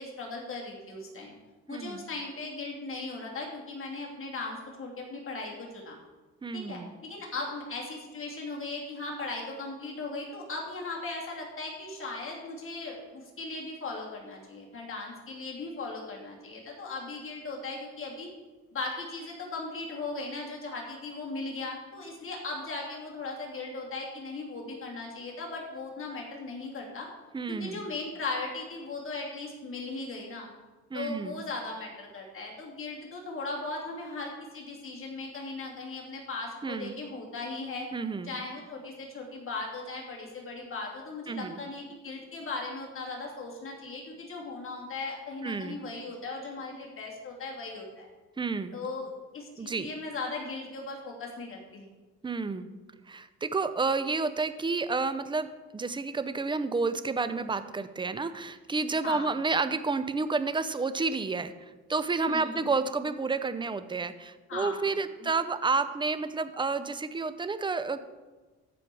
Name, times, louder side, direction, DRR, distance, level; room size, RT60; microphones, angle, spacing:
voice 1, 0.0-1.3 1.7-5.9 6.5-18.3 18.7-27.1 27.5-30.5 30.9-37.9 38.2-48.1 48.7-51.9 59.0-59.3 62.3-62.6 64.5-64.8 65.2-65.3, left 3 dB, 45° left, -2 dB, 3.0 m, -38 dB
voice 2, 1.7-2.1 6.4-6.9 27.3-27.8 30.9-31.4 36.6-37.0 37.9-38.3 41.3-41.6 45.4-45.8 48.4-48.7 49.6-49.9 52.2-52.7 53.1-61.5 61.9-68.0, right 4 dB, 15° right, 12 dB, 0.6 m, -30 dB
14.0 x 5.1 x 4.7 m, 1.2 s
cardioid pair, 90°, 30 cm